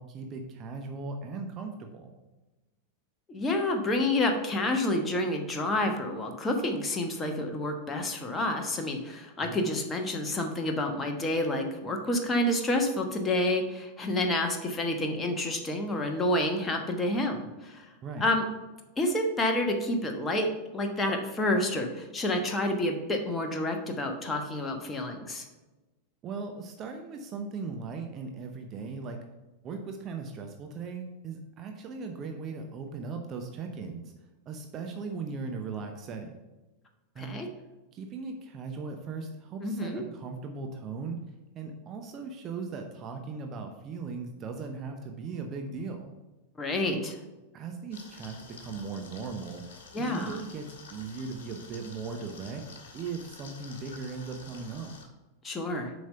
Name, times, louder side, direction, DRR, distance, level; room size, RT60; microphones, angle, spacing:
voice 1, 0.0-2.1 9.4-9.6 18.0-18.3 26.2-29.2 29.6-34.1 34.5-36.3 37.1-37.4 37.9-41.2 41.5-46.1 46.9-47.0 47.5-49.6 50.0-52.6 52.9-54.9, right 4 dB, 30° right, 4 dB, 0.8 m, -38 dB
voice 2, 3.3-17.9 18.2-18.4 19.0-25.5 37.2-37.5 39.6-40.0 46.6-47.1 49.9-50.4 55.4-55.9, left 1 dB, 15° left, 3 dB, 1.2 m, -29 dB
sound 1, 47.9-55.0, left 4 dB, 55° left, 1.7 m, -49 dB
7.4 x 5.3 x 5.7 m, 1.1 s
figure-of-eight pair, 90°, 0 cm